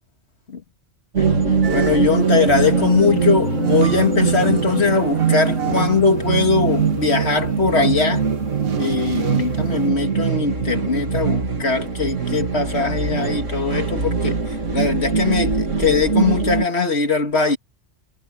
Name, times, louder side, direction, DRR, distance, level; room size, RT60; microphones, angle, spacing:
sound 1, 1.1-16.6, right 5 dB, 85° right, 2.7 m, -22 dB
sound 2, 1.6-6.0 6.4-9.7, right 9 dB, 55° right, 1.0 m, -32 dB
voice 1, 1.7-8.2 8.8-14.4 14.7-17.6, left 4 dB, 60° left, 2.2 m, -20 dB
omnidirectional pair, 1.3 m